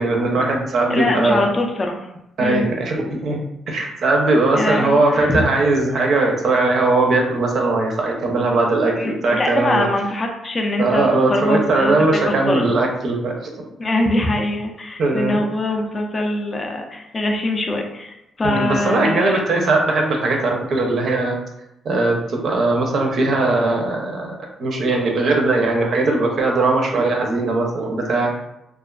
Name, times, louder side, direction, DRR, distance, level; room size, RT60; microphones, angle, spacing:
voice 1, 0.0-1.5 2.4-9.9 10.8-13.7 15.0-15.4 18.4-21.4 21.8-28.3, right 2 dB, 60° right, 1 dB, 0.5 m, -19 dB
voice 2, 0.9-2.0 2.4-2.7 4.5-5.4 9.0-12.0 12.3-12.6 13.8-19.4, left 1 dB, 30° left, 2 dB, 0.4 m, -23 dB
2.4 x 2.3 x 2.2 m, 0.88 s
cardioid pair, 90°, 0 cm